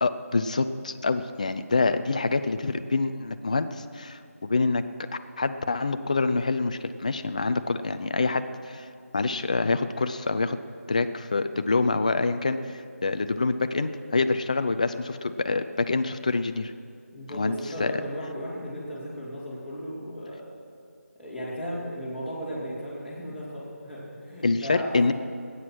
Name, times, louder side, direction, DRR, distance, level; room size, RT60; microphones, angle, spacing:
voice 1, 0.0-4.8 5.4-8.9 9.1-10.6 10.9-16.7 17.3-17.9 24.4-25.1, left 3 dB, 30° left, 10 dB, 0.5 m, -26 dB
voice 2, 17.1-20.4 21.2-24.9, equal, 5° right, -12 dB, 2.9 m, -36 dB
19.0 x 9.6 x 6.0 m, 2.3 s
figure-of-eight pair, 165°, 8 cm